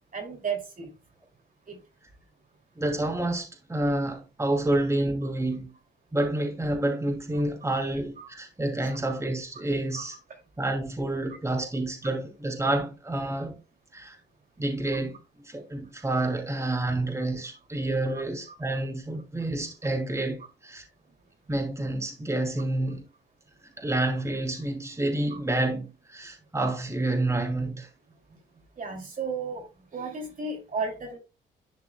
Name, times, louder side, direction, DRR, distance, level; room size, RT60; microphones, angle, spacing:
voice 1, 0.1-0.9 1.7-1.8 8.2-8.3 8.8-9.0 9.9-10.1 18.1-18.2 25.3-25.4 28.8-29.7 29.9-31.2, right 4 dB, 45° right, 2.7 m, -33 dB
voice 2, 2.8-5.7 6.1-10.1 10.6-13.6 13.9-14.2 14.6-15.2 15.4-20.8 21.5-23.0 23.8-27.9, right 1 dB, 15° right, 2.6 m, -29 dB
11.0 x 5.9 x 2.3 m
cardioid pair, 90°, 20 cm